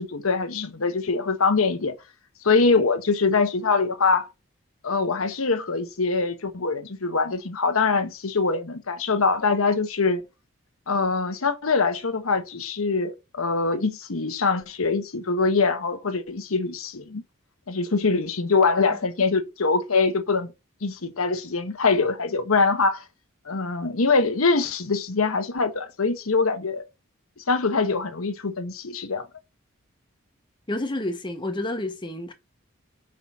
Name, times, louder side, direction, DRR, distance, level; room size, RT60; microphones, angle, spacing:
voice 1, 0.0-1.9 2.4-4.3 4.8-10.2 10.9-17.2 17.7-20.5 20.8-23.0 23.4-26.9 27.5-29.3, left 4 dB, 90° left, 1.1 m, -23 dB
voice 2, 30.7-32.3, left 1 dB, 20° left, 0.9 m, -29 dB
5.7 x 4.9 x 6.0 m
head